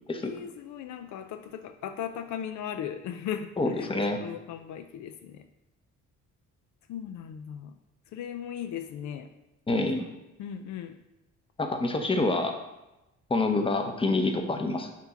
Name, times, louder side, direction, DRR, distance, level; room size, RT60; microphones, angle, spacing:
voice 1, 0.2-3.9 4.2-5.5 6.9-7.7 8.1-9.3 10.4-11.0, left 9 dB, 70° left, 8 dB, 0.5 m, -37 dB
voice 2, 3.6-4.2 9.7-10.0 11.6-12.5 13.3-14.9, left 2 dB, 20° left, 5 dB, 0.8 m, -27 dB
5.9 x 2.9 x 5.6 m, 0.97 s
cardioid pair, 90°, 30 cm